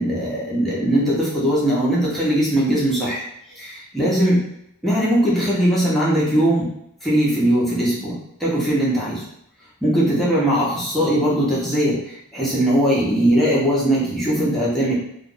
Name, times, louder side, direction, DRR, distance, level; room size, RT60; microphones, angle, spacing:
voice 1, 0.0-3.2 3.6-4.4 4.8-6.7 7.0-9.2 9.8-14.9, right 1 dB, ahead, -7 dB, 1.0 m, -20 dB
2.5 x 2.5 x 3.8 m, 0.76 s
head